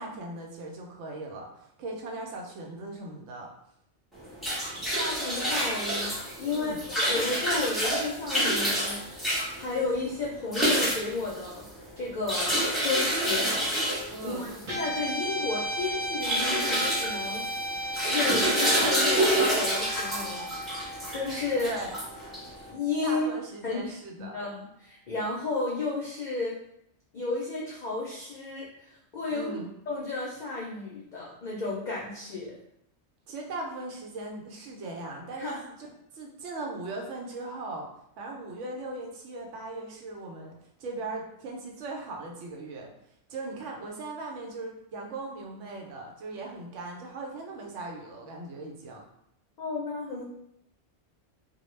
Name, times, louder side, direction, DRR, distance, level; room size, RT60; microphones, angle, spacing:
voice 1, 0.0-3.5 6.4-6.8 14.1-14.5 21.6-21.9 23.0-24.4 29.3-29.7 33.3-35.5 36.1-37.9 38.2-42.9 43.3-49.0, right 2 dB, 90° right, 0 dB, 0.9 m, -39 dB
sound 1, 4.1-22.7, equal, ahead, 0.5 m, -28 dB
voice 2, 4.9-11.7 12.0-17.4 18.1-21.7 22.7-23.3 23.6-26.6 27.1-29.5 29.9-32.6 35.4-35.6 49.6-50.2, left 3 dB, 55° left, -5 dB, 0.5 m, -33 dB
Guitar, 14.6-23.1, equal, 50° right, 0.9 m, -35 dB
2.3 x 2.1 x 3.0 m, 0.75 s
omnidirectional pair, 1.2 m